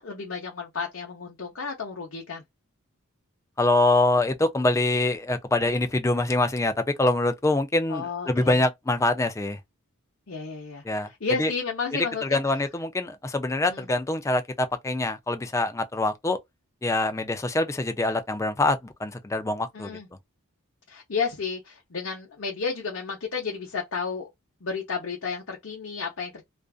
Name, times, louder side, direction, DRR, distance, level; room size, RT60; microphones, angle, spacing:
voice 1, 0.0-2.4 7.9-8.6 10.3-12.4 13.7-13.9 19.7-20.1 20.9-24.3 24.6-26.4, left 5 dB, 60° left, 0.7 m, -32 dB
voice 2, 3.6-6.7 7.0-9.6 10.8-11.1 11.4-11.5 11.9-16.4 16.8-19.9, left 2 dB, 15° left, 0.3 m, -24 dB
2.5 x 2.4 x 2.3 m
head